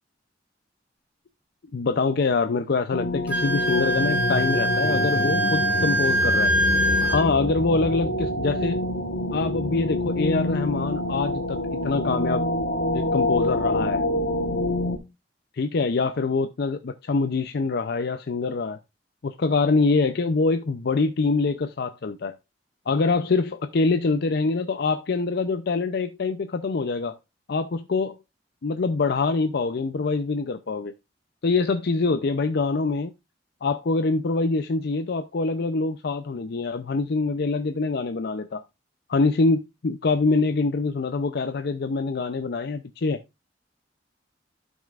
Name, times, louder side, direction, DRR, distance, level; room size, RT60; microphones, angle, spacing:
voice 1, 1.7-6.5 7.0-8.8 9.3-11.6 11.8-12.5 12.9-14.0 15.6-18.8 19.2-22.4 22.9-27.2 27.5-28.2 28.6-30.9 31.4-33.1 33.6-38.6 39.1-43.2, left 3 dB, 60° left, 0.5 m, -24 dB
sound 1, 2.9-15.0, left 1 dB, 85° left, 1.3 m, -26 dB
Wind instrument woodwind instrument, 3.3-7.2, right 1 dB, 10° right, 1.3 m, -24 dB
12.5 x 5.4 x 2.4 m
head